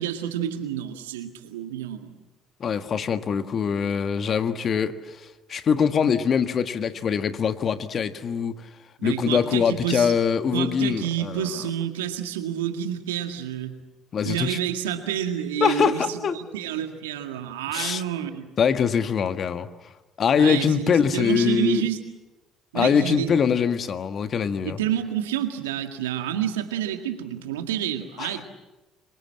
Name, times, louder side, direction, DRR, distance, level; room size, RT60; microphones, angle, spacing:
voice 1, 0.0-2.1 9.0-10.2 10.5-13.8 14.2-18.5 20.4-22.0 22.7-23.3 24.6-28.5, right 10 dB, 85° right, 7 dB, 1.9 m, -29 dB
voice 2, 2.6-8.7 9.0-11.5 14.1-14.6 15.6-16.4 17.7-18.0 18.6-19.7 20.2-21.8 22.7-24.8 28.2-28.4, left 7 dB, 50° left, 10 dB, 1.6 m, -23 dB
27.0 x 23.0 x 7.6 m, 1.1 s
hypercardioid pair, 55°, 0 cm